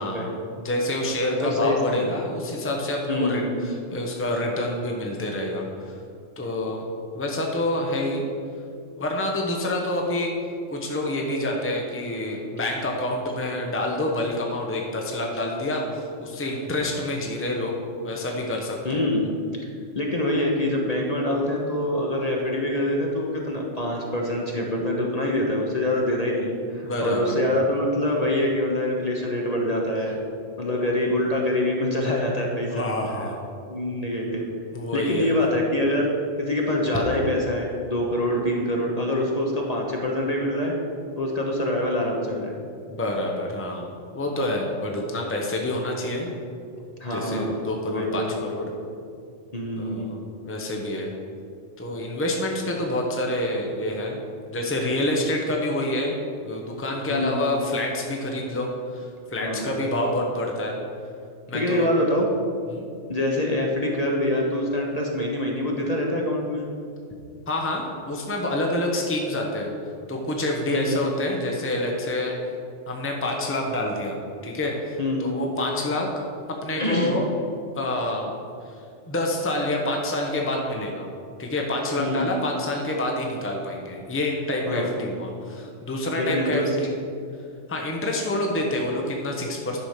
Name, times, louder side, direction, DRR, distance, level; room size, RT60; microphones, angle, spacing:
voice 1, 0.0-5.9 6.4-6.8 7.1-8.2 8.9-10.3 10.7-17.8 18.0-19.0 20.3-20.4 26.8-27.4 32.7-33.4 34.7-35.3 42.9-46.4 47.1-48.2 48.5-48.7 49.8-50.2 50.4-51.1 51.8-54.2 54.5-56.1 56.4-60.8 61.5-61.9 62.7-62.8 67.5-69.7 70.1-72.4 72.9-74.2 74.4-76.1 76.5-77.2 77.7-78.3 79.1-81.1 81.4-87.0 87.7-89.8, left 1 dB, 10° left, 0 dB, 1.0 m, -27 dB
voice 2, 1.4-2.1 3.1-3.5 18.8-19.3 19.9-30.2 30.6-32.9 33.7-34.4 34.9-36.1 36.4-40.7 41.2-42.6 47.0-47.6 47.9-48.3 49.5-50.1 57.1-57.4 59.4-59.7 61.5-62.3 63.1-66.7 70.7-71.0 75.0-75.3 76.8-77.2 82.0-82.3 84.7-84.9 86.2-86.6, left 1 dB, 35° left, -1 dB, 1.1 m, -25 dB
10.5 x 5.0 x 6.5 m, 2.4 s
omnidirectional pair, 1.3 m